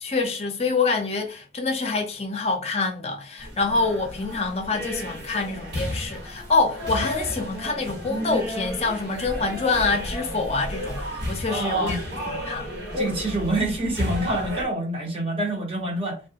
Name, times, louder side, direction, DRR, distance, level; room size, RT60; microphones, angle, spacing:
voice 1, 0.0-12.0 12.3-12.7, left 3 dB, 35° left, 0.5 m, -26 dB
sound 1, 3.4-14.7, equal, 90° right, 1.2 m, -32 dB
voice 2, 11.5-12.0 12.9-16.2, right 2 dB, 30° right, 0.8 m, -26 dB
3.2 x 2.2 x 2.8 m
head